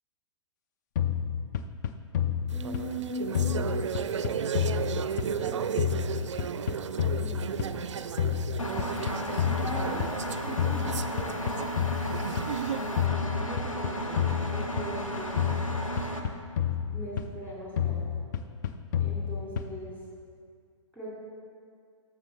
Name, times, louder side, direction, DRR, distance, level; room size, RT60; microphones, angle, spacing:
sound 1, 1.0-3.0 3.3-5.5 5.8-7.9 8.2-10.3 10.6-12.6 13.0-15.1 15.4-17.5 17.8-19.9, left 8 dB, 35° left, 0.4 m, -30 dB
voice 1, 2.5-3.9 5.3-5.7 7.1-7.9 9.5-10.1 10.4-12.0 12.7-15.8 16.9-18.1 19.0-20.0 20.9-21.1, equal, 10° left, -6 dB, 2.3 m, -40 dB
sound 2, 2.5-13.0, right 7 dB, 65° right, 0.4 m, -34 dB
Engine, 8.6-16.2, equal, 85° left, 0.9 m, -34 dB
14.0 x 6.2 x 3.2 m, 2.2 s
figure-of-eight pair, 115°, 17 cm